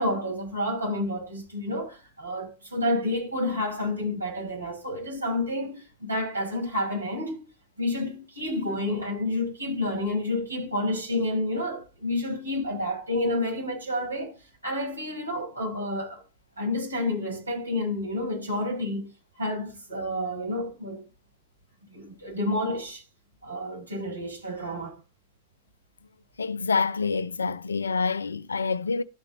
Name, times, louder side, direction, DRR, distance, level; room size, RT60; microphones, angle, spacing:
voice 1, 0.0-7.3 7.8-16.2 16.6-19.1 19.4-21.0 21.9-23.0 23.4-25.0, left 1 dB, 80° right, 6.3 m, -29 dB
voice 2, 26.4-29.0, left 4 dB, 75° left, 0.6 m, -27 dB
12.5 x 5.2 x 4.2 m
figure-of-eight pair, 90°, 0 cm